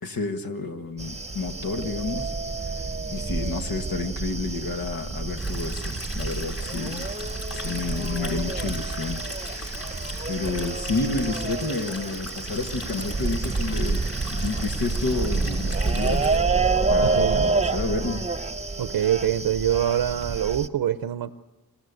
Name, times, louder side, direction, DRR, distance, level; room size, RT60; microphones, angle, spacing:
voice 1, 0.0-2.3 2.6-2.7 3.1-7.1 7.5-9.9 10.3-14.0 14.3-16.3 16.9-18.2, left 3 dB, 75° left, 7 dB, 1.6 m, -30 dB
sound 1, 1.0-20.7, right 3 dB, 20° right, 0.9 m, -28 dB
Stream, 5.4-16.4, left 2 dB, 40° left, 4.6 m, -39 dB
voice 2, 17.0-17.5 18.8-21.3, right 10 dB, 90° right, 11 dB, 0.7 m, -24 dB
26.5 x 14.5 x 8.2 m, 1.2 s
cardioid pair, 80°, 36 cm